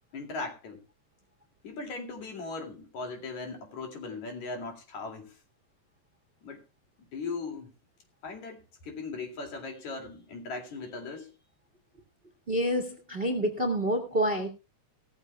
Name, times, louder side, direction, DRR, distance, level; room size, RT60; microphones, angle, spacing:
voice 1, 0.1-0.8 1.6-5.4 6.4-6.6 7.0-7.7 8.2-11.3, left 3 dB, 65° left, 3.8 m, -38 dB
voice 2, 12.5-14.5, equal, 25° right, 1.5 m, -28 dB
17.5 x 14.0 x 2.3 m
omnidirectional pair, 3.6 m